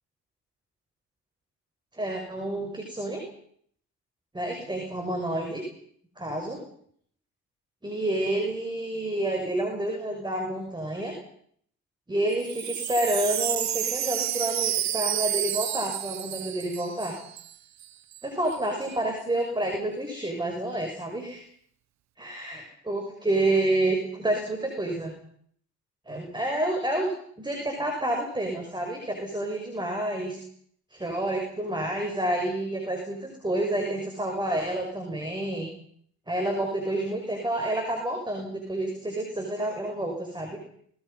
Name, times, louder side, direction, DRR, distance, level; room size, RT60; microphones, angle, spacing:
voice 1, 1.9-3.2 4.3-5.6 6.2-6.6 7.8-11.1 12.1-17.2 18.2-21.4 22.2-25.1 26.1-27.1 27.4-30.4 30.9-35.7 36.3-40.6, right 1 dB, 15° right, 2 dB, 6.1 m, -29 dB
Wind chime, 12.3-17.6 17.8-17.9 18.1-18.6, right 11 dB, 65° right, 1.0 m, -30 dB
29.5 x 21.0 x 5.7 m, 0.64 s
cardioid pair, 90°, 30 cm